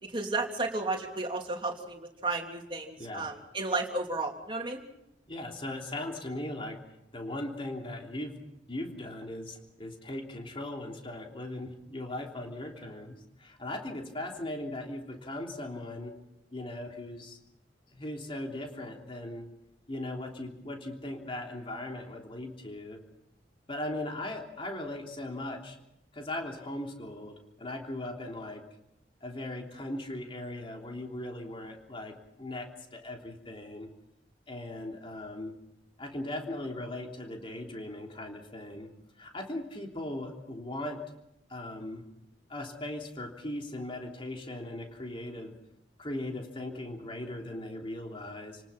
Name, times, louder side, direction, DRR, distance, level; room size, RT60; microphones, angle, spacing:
voice 1, 0.0-4.8, right 3 dB, 30° right, 1 dB, 3.2 m, -33 dB
voice 2, 3.0-3.3 5.3-6.8 7.1-8.4 8.7-16.2 16.5-17.4 17.9-19.5 19.9-23.0 23.7-25.8 26.1-28.6 29.2-33.9 34.5-35.5 36.0-38.9 39.2-41.0 41.5-42.0 42.5-45.5 46.0-48.6, left 1 dB, 30° left, 1 dB, 3.3 m, -38 dB
29.5 x 19.0 x 5.7 m, 0.85 s
head